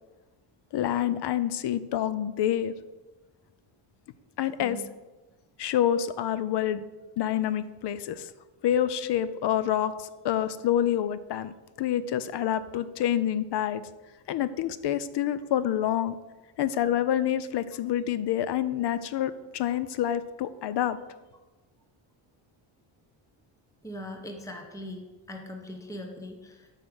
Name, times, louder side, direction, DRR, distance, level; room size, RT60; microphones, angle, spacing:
voice 1, 0.7-2.7 4.4-4.8 5.6-6.8 7.2-8.3 8.6-11.5 11.8-13.8 14.3-16.2 16.6-21.0, left 10 dB, 60° left, 14 dB, 0.6 m, -27 dB
voice 2, 23.8-25.0 25.3-26.7, equal, 5° left, 3 dB, 0.9 m, -40 dB
8.4 x 5.0 x 6.3 m, 1.1 s
cardioid pair, 135°, 48 cm